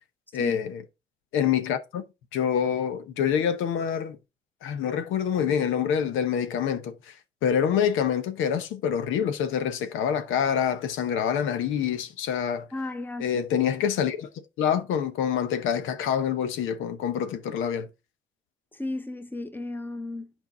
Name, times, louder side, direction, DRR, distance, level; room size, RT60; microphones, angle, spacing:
voice 1, 0.3-0.8 1.3-2.0 2.3-4.2 4.6-7.1 7.4-12.7 13.2-14.3 14.6-17.9, left 8 dB, 90° left, 0.8 m, -26 dB
voice 2, 12.7-13.3 18.7-20.3, left 2 dB, 10° left, 1.0 m, -34 dB
8.3 x 4.6 x 3.8 m
cardioid pair, 90°, 20 cm